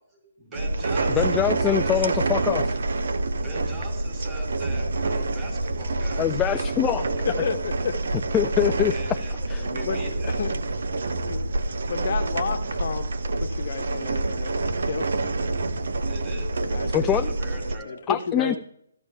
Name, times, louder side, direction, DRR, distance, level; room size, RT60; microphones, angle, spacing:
voice 1, 0.1-2.4 3.4-7.6 8.8-10.7 15.9-17.9, right 1 dB, 15° right, -1 dB, 4.5 m, -40 dB
sound 1, 0.5-17.8, right 2 dB, 70° right, 0.8 m, -27 dB
voice 2, 1.1-2.8 6.2-7.1 8.3-8.9 9.5-9.6 16.9-17.3 18.1-18.6, left 10 dB, 15° left, 8 dB, 0.3 m, -24 dB
voice 3, 7.2-7.9 9.8-10.0 10.4-10.5 11.3-11.4 11.9-13.1 13.4-15.4 16.6-17.2 17.8-18.6, left 6 dB, 50° left, 6 dB, 1.0 m, -31 dB
15.5 x 12.5 x 2.3 m, 0.73 s
hypercardioid pair, 155°, 0 cm